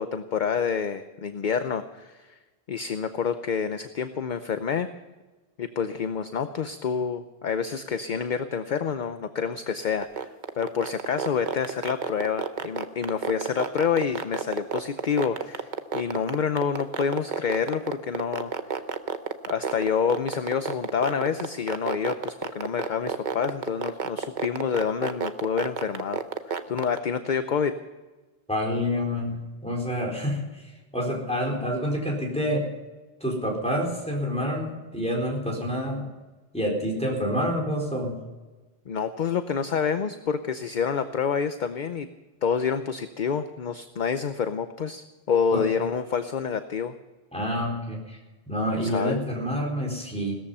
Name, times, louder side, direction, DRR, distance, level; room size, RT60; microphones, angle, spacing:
voice 1, 0.0-2.3 2.7-4.9 5.6-18.5 19.5-26.2 26.5-27.8 38.9-42.1 42.4-46.9 48.7-49.2, left 6 dB, 50° left, 9 dB, 0.8 m, -28 dB
sound 1, 10.0-27.0, right 6 dB, 50° right, 1.0 m, -29 dB
voice 2, 28.5-30.6 30.9-32.7 33.2-36.1 36.5-38.2 45.5-45.6 47.3-48.2 48.5-50.4, equal, 5° left, -1 dB, 4.3 m, -28 dB
17.5 x 14.0 x 5.5 m, 1.2 s
omnidirectional pair, 1.0 m